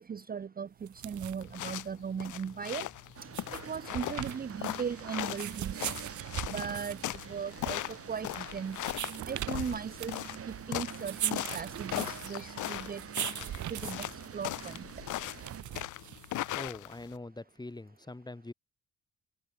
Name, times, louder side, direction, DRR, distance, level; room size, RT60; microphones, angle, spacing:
voice 1, 0.0-2.9 3.6-5.8 6.5-7.0 7.3-8.8 9.2-10.1 10.7-13.0 13.7-14.9, right 6 dB, 30° right, 0.7 m, -38 dB
sound 1, 0.8-16.7, right 12 dB, 75° right, 2.7 m, -41 dB
sound 2, 1.4-17.2, left 15 dB, 75° left, 1.0 m, -39 dB
sound 3, 3.1-15.6, right 8 dB, 50° right, 3.0 m, -46 dB
voice 2, 16.5-18.5, left 2 dB, 15° left, 3.9 m, -43 dB
open air
cardioid pair, 90°, 30 cm